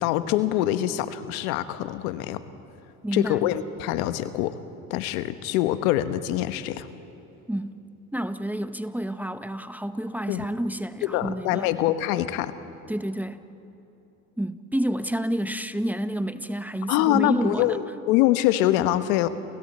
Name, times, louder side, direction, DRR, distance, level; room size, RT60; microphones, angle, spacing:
voice 1, 0.0-2.4 3.1-4.6 4.9-6.9 10.3-10.4 11.0-12.5 16.9-19.3, left 13 dB, 80° left, 11 dB, 1.2 m, -24 dB
voice 2, 3.0-3.4 7.5-7.8 8.1-11.7 12.9-13.4 14.4-17.8, right 1 dB, 5° right, 10 dB, 0.9 m, -29 dB
30.0 x 29.0 x 4.4 m, 3.0 s
hypercardioid pair, 75°, 42 cm